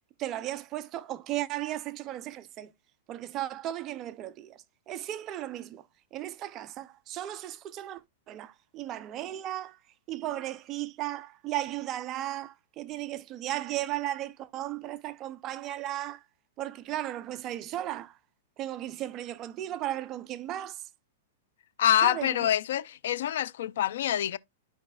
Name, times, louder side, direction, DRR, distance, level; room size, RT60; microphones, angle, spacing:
voice 1, 0.2-2.7 3.1-5.8 6.1-9.8 10.1-16.2 16.6-18.2 18.6-20.9 22.0-22.5, right 13 dB, 25° right, 0.5 m, -35 dB
voice 2, 21.8-24.4, left 11 dB, 70° left, 0.4 m, -26 dB
12.5 x 4.9 x 2.3 m
supercardioid pair, 155°, 0 cm